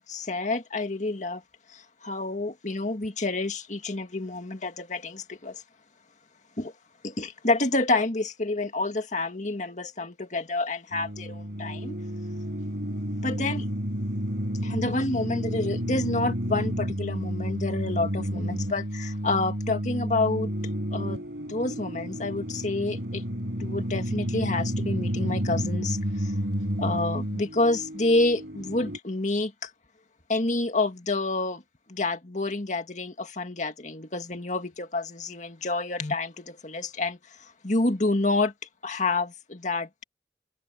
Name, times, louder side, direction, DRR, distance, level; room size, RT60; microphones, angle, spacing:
voice 1, 0.0-1.4 1.7-5.6 6.6-6.7 7.0-12.0 13.2-13.7 14.6-20.5 20.9-21.2 21.5-23.2 23.6-26.3 26.8-29.7 30.3-31.6 31.9-38.5 38.8-39.9, left 2 dB, 45° left, 2.0 m, -28 dB
sound 1, 10.9-29.0, equal, 70° right, 5.2 m, -31 dB
open air
head